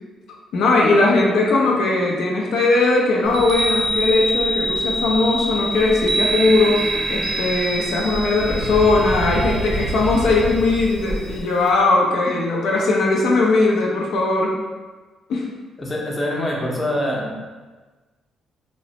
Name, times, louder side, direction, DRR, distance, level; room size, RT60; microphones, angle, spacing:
voice 1, 0.5-6.8 7.1-14.6 15.3-15.5, left 3 dB, 75° left, -2 dB, 0.5 m, -19 dB
Chime, 3.2-11.4, right 1 dB, 65° right, 0.6 m, -26 dB
Breathing, 5.7-11.7, right 1 dB, 20° right, 0.6 m, -29 dB
voice 2, 15.8-17.3, left 1 dB, 25° left, -2 dB, 0.6 m, -24 dB
2.9 x 2.0 x 2.8 m, 1.3 s
cardioid pair, 90°, 0 cm